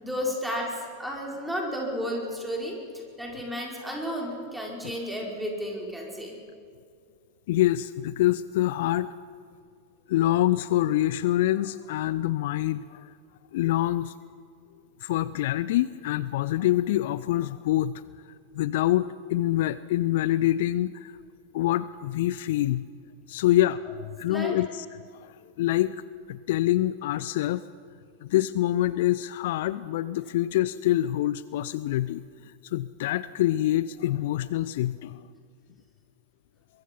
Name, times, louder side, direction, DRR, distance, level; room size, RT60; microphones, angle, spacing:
voice 1, 0.0-2.8 3.2-6.4 24.3-24.6, equal, 5° right, -1 dB, 5.4 m, -32 dB
voice 2, 7.5-9.1 10.1-13.1 13.5-14.1 15.0-18.0 18.5-21.2 21.5-22.9 23.3-24.9 25.2-26.0 26.3-27.6 28.2-35.2, left 14 dB, 55° left, 17 dB, 0.5 m, -26 dB
23.0 x 22.5 x 5.5 m, 2.3 s
figure-of-eight pair, 90°, 0 cm